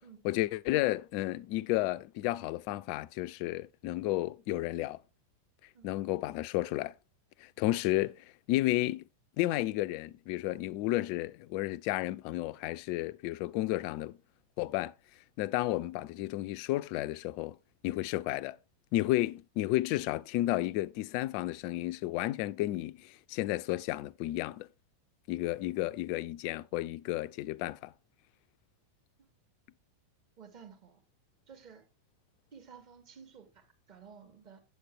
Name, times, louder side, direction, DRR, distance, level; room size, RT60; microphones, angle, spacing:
voice 1, 0.2-5.0 5.8-6.9 7.4-8.2 8.5-9.0 9.4-14.2 14.6-14.9 15.4-17.6 17.8-18.6 18.9-24.7 25.3-27.9, left 16 dB, 45° left, 0.4 m, -32 dB
voice 2, 30.4-31.0 31.5-31.9 32.5-34.6, right 6 dB, 40° right, 2.5 m, -53 dB
8.2 x 8.0 x 3.5 m
figure-of-eight pair, 90°, 0 cm